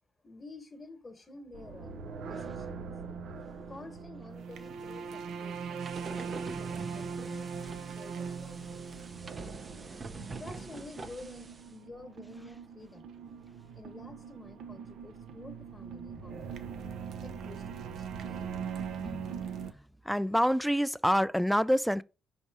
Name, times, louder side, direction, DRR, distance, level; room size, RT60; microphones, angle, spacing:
voice 1, 0.2-1.9 2.2-2.8 3.7-9.1 10.2-13.4 13.7-16.5 17.2-18.4, left 2 dB, 25° left, 1.2 m, -50 dB
sound 1, 1.5-19.7, right 6 dB, 75° right, 0.7 m, -41 dB
sound 2, 5.8-11.7, right 3 dB, 35° right, 0.7 m, -45 dB
voice 2, 19.0-19.4 20.1-22.0, equal, ahead, 0.3 m, -27 dB
5.3 x 4.2 x 4.7 m
cardioid pair, 90°, 0 cm